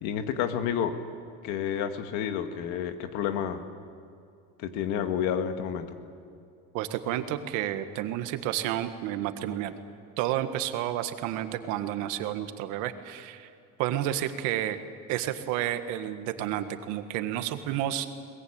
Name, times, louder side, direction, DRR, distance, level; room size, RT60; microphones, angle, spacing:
voice 1, 0.0-1.0 1.4-3.6 4.6-6.0, left 8 dB, 80° left, 8 dB, 1.9 m, -30 dB
voice 2, 6.7-9.7 10.2-13.5 13.8-14.8 15.1-18.1, right 12 dB, 80° right, 9 dB, 1.7 m, -30 dB
22.0 x 21.0 x 8.8 m, 2.4 s
cardioid pair, 140°, 29 cm